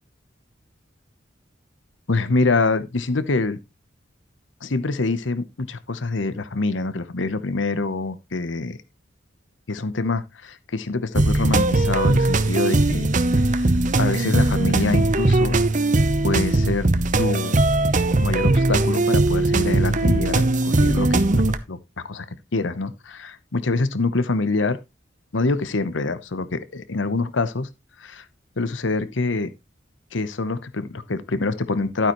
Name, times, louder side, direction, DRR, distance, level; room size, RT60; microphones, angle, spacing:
voice 1, 2.1-3.6 4.6-8.8 9.7-13.1 13.3-13.4 14.0-15.6 16.2-16.9 17.2-17.6 18.2-21.4 21.7-21.8 22.0-22.3 22.5-24.8 25.3-27.7 28.0-28.2 28.6-29.5 30.1-32.1, left 3 dB, 80° left, 0.9 m, -25 dB
sound 1, 11.2-21.6, right 2 dB, 40° right, 0.8 m, -19 dB
12.0 x 9.0 x 3.1 m
head